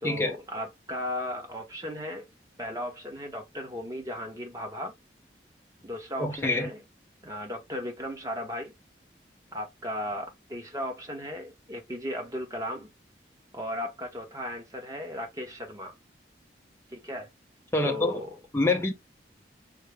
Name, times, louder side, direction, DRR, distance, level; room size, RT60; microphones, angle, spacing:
voice 1, 0.0-2.2 2.6-4.9 5.8-6.8 7.2-8.7 9.5-12.9 13.5-15.9 16.9-17.3 17.8-18.4, left 1 dB, 20° right, 0.9 m, -36 dB
voice 2, 6.2-6.7 17.7-18.2 18.5-18.9, left 2 dB, 15° left, 0.6 m, -26 dB
3.6 x 2.0 x 3.3 m
head